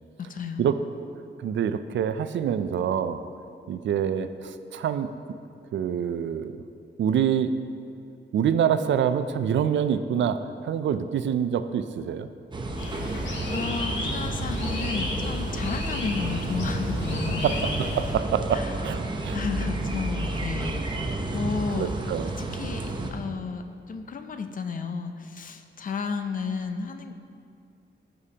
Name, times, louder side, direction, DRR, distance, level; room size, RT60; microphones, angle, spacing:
voice 1, 0.2-0.7 12.8-13.2 13.5-17.5 18.5-18.8 19.3-21.9 22.4-27.1, left 5 dB, 45° left, 7 dB, 0.5 m, -33 dB
voice 2, 1.4-3.2 3.7-5.1 5.7-6.6 7.0-7.6 8.3-12.3 17.4-19.4 21.8-22.3, right 8 dB, 80° right, 11 dB, 0.4 m, -26 dB
sound 1, 12.5-23.1, right 2 dB, 25° right, 0.6 m, -31 dB
sound 2, 12.8-18.1, left 2 dB, 80° left, 1.3 m, -33 dB
14.5 x 5.0 x 2.8 m, 2.4 s
wide cardioid pair, 170°, 19 cm